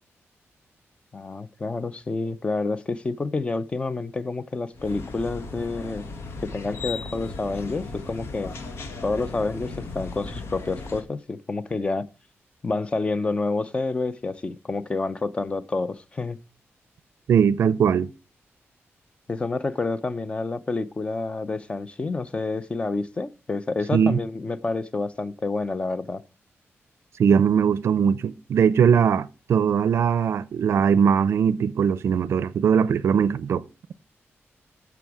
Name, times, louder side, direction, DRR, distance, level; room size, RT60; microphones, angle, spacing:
voice 1, 1.1-6.0 6.4-8.6 9.0-12.1 12.6-16.4 19.3-26.2, left 3 dB, 25° left, 0.6 m, -28 dB
sound 1, 4.7-11.0, left 3 dB, 70° left, 1.9 m, -36 dB
voice 2, 17.3-18.1 23.9-24.2 27.2-33.6, right 7 dB, 70° right, 0.5 m, -20 dB
15.0 x 6.0 x 4.8 m
wide cardioid pair, 170°, 5 cm